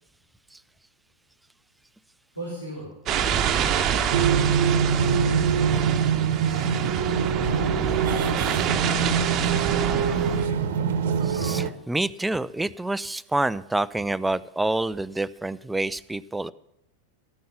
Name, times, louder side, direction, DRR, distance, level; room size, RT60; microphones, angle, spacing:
voice 1, 2.3-3.0 3.5-5.1 6.5-7.1 7.9-8.5 9.2-10.9, right 1 dB, 90° left, 4.7 m, -40 dB
sound 1, 3.1-10.5, right 8 dB, 30° right, 1.0 m, -27 dB
sound 2, 4.1-11.7, right 6 dB, 55° right, 1.0 m, -24 dB
voice 2, 11.2-16.5, right 2 dB, 5° right, 0.4 m, -27 dB
13.5 x 9.3 x 5.8 m
figure-of-eight pair, 90°, 0 cm